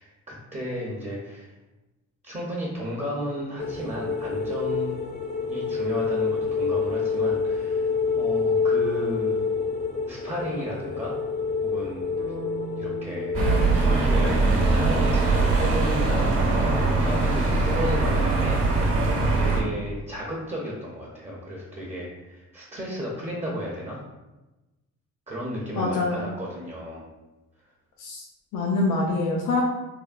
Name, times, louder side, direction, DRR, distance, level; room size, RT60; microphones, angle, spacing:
voice 1, 0.0-1.5 2.2-5.0 5.5-9.4 10.1-11.2 11.6-12.1 12.7-24.0 25.3-27.0, equal, 25° right, -3 dB, 0.6 m, -33 dB
sound 1, 3.6-17.0 17.3-17.5, left 5 dB, 25° left, 0.4 m, -28 dB
sound 2, 12.2-16.2, right 4 dB, 75° right, 0.7 m, -42 dB
sound 3, 13.3-19.6, right 3 dB, 50° right, 0.9 m, -22 dB
voice 2, 25.8-26.3 28.0-28.2 28.5-29.6, left 3 dB, 75° left, -1 dB, 0.5 m, -25 dB
3.3 x 2.1 x 2.4 m, 1.1 s
cardioid pair, 90°, 30 cm